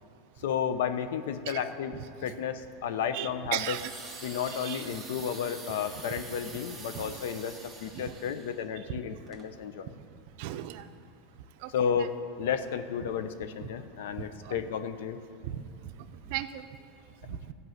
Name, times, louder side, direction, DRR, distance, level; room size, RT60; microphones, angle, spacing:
voice 1, 0.4-1.9 2.2-3.8 4.2-9.9 11.7-15.2 17.3-17.4, left 7 dB, 80° left, 10 dB, 0.7 m, -32 dB
voice 2, 3.1-3.9 4.5-4.9 6.9-7.1 7.9-8.1 8.9-9.0 10.4-10.9 11.6-12.1 14.2-14.6 15.5-15.9 16.3-16.7 17.3-17.5, right 13 dB, 60° right, 10 dB, 0.6 m, -37 dB
sound 1, 3.7-8.6 9.3-9.4, right 3 dB, 5° right, 1.6 m, -45 dB
15.0 x 5.5 x 7.8 m, 2.4 s
supercardioid pair, 140°, 0 cm